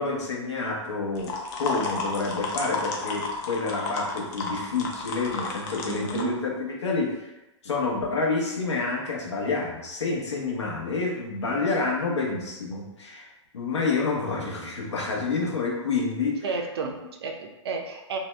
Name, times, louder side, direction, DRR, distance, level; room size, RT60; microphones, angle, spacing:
voice 1, 0.0-1.3 1.6-7.3 7.6-16.4, left 4 dB, 70° left, -2 dB, 0.9 m, -28 dB
sound 1, 1.1-6.2, left 3 dB, 35° left, 0.5 m, -32 dB
voice 2, 5.9-6.3 16.4-18.2, right 4 dB, 55° right, 3 dB, 0.5 m, -31 dB
2.7 x 2.2 x 3.2 m, 0.97 s
figure-of-eight pair, 110°, 15 cm